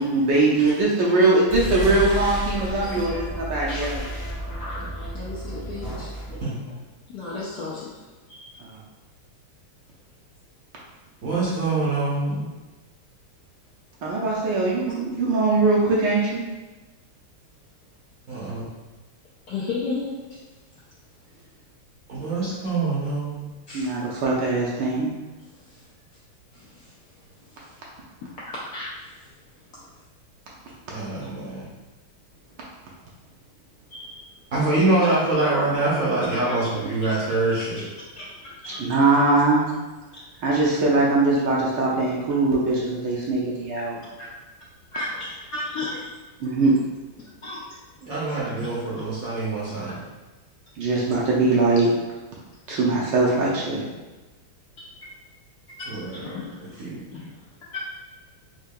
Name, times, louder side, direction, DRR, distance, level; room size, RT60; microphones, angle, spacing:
voice 1, 0.0-4.0 8.6-8.8 14.0-16.5 23.7-25.1 38.8-39.8 40.4-44.0 46.4-46.7 50.8-51.9 52.7-53.8, right 3 dB, 75° right, -4 dB, 1.1 m, -21 dB
voice 2, 0.6-1.2 1.8-1.9 5.1-6.1 6.7-6.8 7.1-8.0 8.3-8.5 19.5-20.4 23.7-24.0 25.7-25.8 26.5-26.9 27.5-27.8 28.2-29.2 33.9-34.2 36.5-36.6 38.1-38.3 38.6-38.8 44.2-44.3 44.9-46.2 47.2-47.7 48.6-48.8 55.8-56.6 57.1-57.4 57.7-57.8, left 3 dB, 75° left, -7 dB, 0.9 m, -34 dB
sound 1, 1.5-6.5, equal, 20° left, 0.6 m, -31 dB
voice 3, 11.2-12.5 18.3-18.7 22.1-23.5 30.9-31.7 34.5-37.8 48.0-50.0 55.9-56.4 56.7-57.0, right 2 dB, 60° right, -7 dB, 1.0 m, -25 dB
4.6 x 2.7 x 2.2 m, 1.2 s
omnidirectional pair, 2.3 m